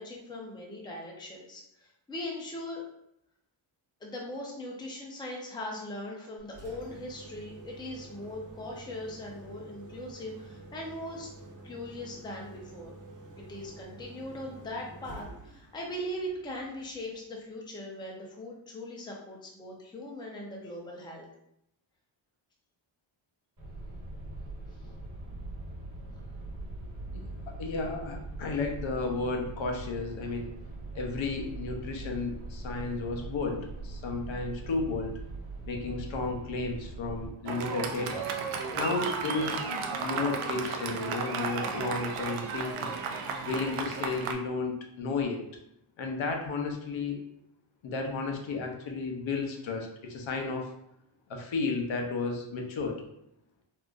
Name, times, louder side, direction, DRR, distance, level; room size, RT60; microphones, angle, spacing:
voice 1, 0.0-2.8 4.0-11.3 11.6-13.0 13.4-21.3, left 1 dB, 10° left, -2 dB, 0.4 m, -40 dB
Engine, 6.4-17.3, right 2 dB, 60° right, 0.9 m, -49 dB
sound 1, 23.6-37.3, right 2 dB, 35° right, 1.1 m, -41 dB
voice 2, 27.1-30.5 30.9-35.1 35.7-38.3 38.8-39.7 40.0-42.9 43.4-45.4 46.0-47.2 47.8-50.7 51.3-53.0, left 3 dB, 70° left, 2 dB, 0.6 m, -33 dB
Fireworks, 37.5-44.3, right 5 dB, 85° right, 0.6 m, -34 dB
3.7 x 2.4 x 2.4 m, 0.78 s
wide cardioid pair, 140°, 49 cm